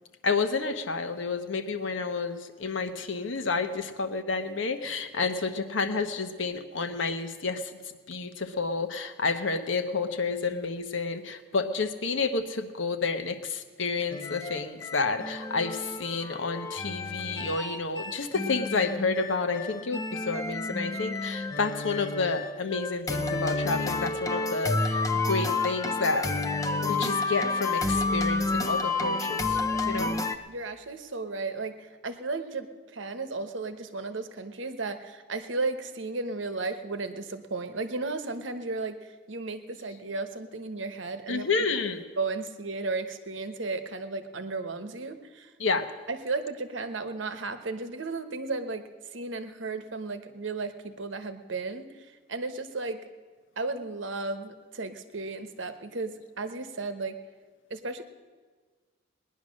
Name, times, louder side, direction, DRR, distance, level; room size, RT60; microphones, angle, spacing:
voice 1, 0.2-7.8 8.1-26.3 26.8-29.6 29.8-30.1 41.3-42.0 45.6-45.9, left 4 dB, 75° left, 8 dB, 1.0 m, -30 dB
sound 1, 14.1-30.3, left 3 dB, 15° left, 0.6 m, -30 dB
voice 2, 30.5-41.5 42.2-45.5 46.1-48.8 49.1-53.0 53.6-57.2 57.7-58.0, right 3 dB, 75° right, 9 dB, 1.0 m, -34 dB
19.0 x 10.5 x 6.4 m, 1.4 s
head